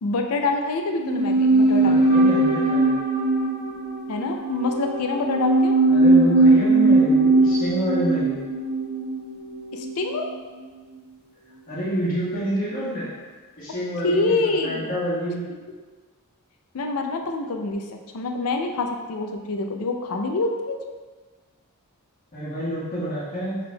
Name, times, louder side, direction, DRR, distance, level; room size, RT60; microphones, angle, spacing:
voice 1, 0.0-2.0 4.1-5.8 9.7-10.3 14.0-14.9 15.5-15.6 16.7-17.8 18.1-20.8, left 3 dB, 70° left, 4 dB, 0.4 m, -26 dB
sound 1, 1.0-10.3 10.6-10.7, right 2 dB, 45° right, 1.4 m, -20 dB
voice 2, 1.8-3.0 5.9-8.4 11.7-13.1 13.6-14.3 14.6-15.5 22.3-23.6, equal, 40° left, -8 dB, 1.3 m, -28 dB
5.8 x 3.5 x 2.2 m, 1.4 s
head